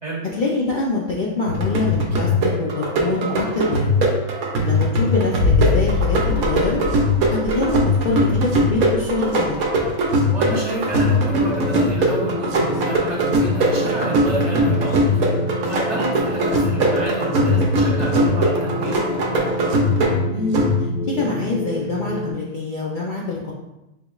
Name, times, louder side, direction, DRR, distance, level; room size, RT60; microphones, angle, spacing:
voice 1, 0.4-4.1 4.6-6.8 7.3-9.7 20.3-23.5, left 3 dB, 85° left, -3 dB, 0.4 m, -25 dB
sound 1, 1.5-21.1, equal, 80° right, 1.1 m, -20 dB
voice 2, 4.6-5.0 10.3-19.0, right 1 dB, 35° right, -5 dB, 1.0 m, -30 dB
sound 2, 5.4-9.6 9.9-10.0, left 4 dB, 60° left, 0.9 m, -24 dB
sound 3, 11.4-22.3, left 1 dB, 40° left, 0.6 m, -28 dB
5.6 x 3.0 x 2.3 m, 0.97 s
omnidirectional pair, 1.5 m